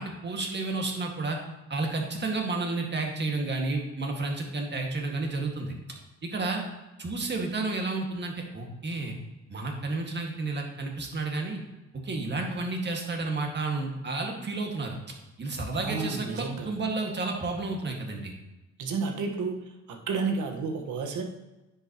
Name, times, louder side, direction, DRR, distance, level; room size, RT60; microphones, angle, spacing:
voice 1, 0.0-1.4 1.7-5.7 6.2-6.7 7.0-9.2 9.5-11.6 11.9-15.0 15.4-18.3, right 3 dB, 35° right, 1 dB, 1.9 m, -31 dB
voice 2, 15.7-16.7 18.8-21.2, right 4 dB, 75° right, 3 dB, 1.4 m, -31 dB
10.0 x 6.8 x 3.0 m, 1.0 s
cardioid pair, 90°, 30 cm